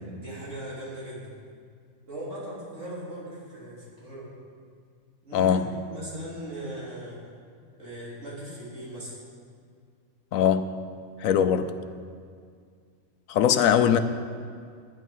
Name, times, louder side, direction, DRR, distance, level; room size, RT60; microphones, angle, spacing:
voice 1, 0.2-1.3 2.0-4.3 5.2-5.6 5.9-7.3 7.8-9.1, right 1 dB, 60° right, 3.9 m, -39 dB
voice 2, 5.3-5.7 10.3-10.7 11.2-11.8 13.3-14.0, left 8 dB, 85° left, 1.0 m, -21 dB
11.0 x 10.0 x 5.5 m
omnidirectional pair, 1.4 m